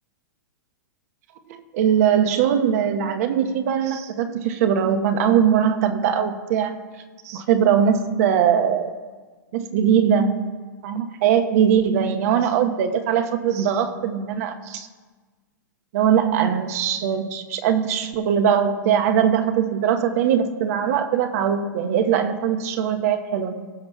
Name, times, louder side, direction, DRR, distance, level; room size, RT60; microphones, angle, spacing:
voice 1, 1.5-6.8 7.2-8.9 9.5-10.5 10.8-14.9 15.9-23.7, right 8 dB, 50° right, 6 dB, 1.0 m, -21 dB
19.0 x 7.9 x 2.3 m, 1.4 s
figure-of-eight pair, 105°, 10 cm